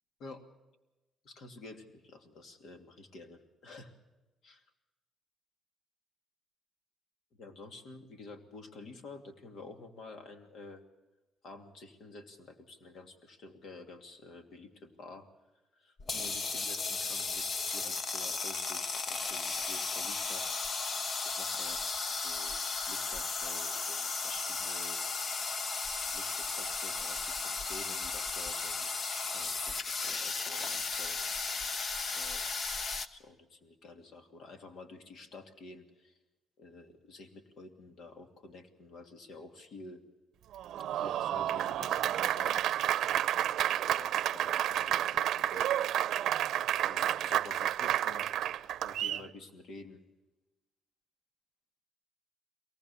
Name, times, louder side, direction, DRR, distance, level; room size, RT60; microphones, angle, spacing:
voice 1, 1.2-3.9 4.4-4.6 7.3-10.8 11.4-15.3 15.7-20.5 21.2-22.6 22.9-25.0 25.9-29.0 29.3-29.8 30.0-31.2 32.1-32.5 32.9-36.2 36.6-40.0 40.9-42.9 43.3-45.9 46.9-48.3 48.8-50.0, left 3 dB, 70° left, 6 dB, 2.7 m, -50 dB
sound 1, 16.0-33.1, left 4 dB, 50° left, 1.2 m, -35 dB
Applause, 40.5-49.3, right 11 dB, 80° right, 0.7 m, -30 dB
23.0 x 19.0 x 7.1 m, 1.1 s
cardioid pair, 90°, 0 cm